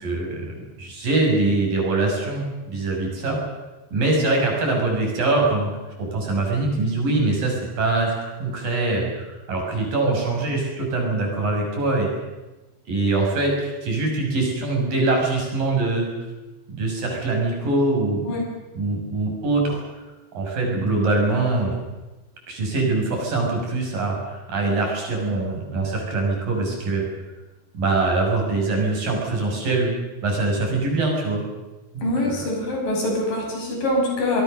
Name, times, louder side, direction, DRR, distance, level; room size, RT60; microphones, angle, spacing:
voice 1, 0.0-0.4 0.8-3.4 3.9-5.7 6.0-12.1 12.9-16.1 16.7-18.2 18.8-19.8 20.3-21.7 22.5-27.0 27.8-29.9 30.2-31.4, right 2 dB, 60° right, 0 dB, 7.5 m, -23 dB
voice 2, 32.0-34.4, left 1 dB, 60° left, 0 dB, 8.0 m, -24 dB
25.5 x 21.5 x 6.6 m, 1.1 s
omnidirectional pair, 4.4 m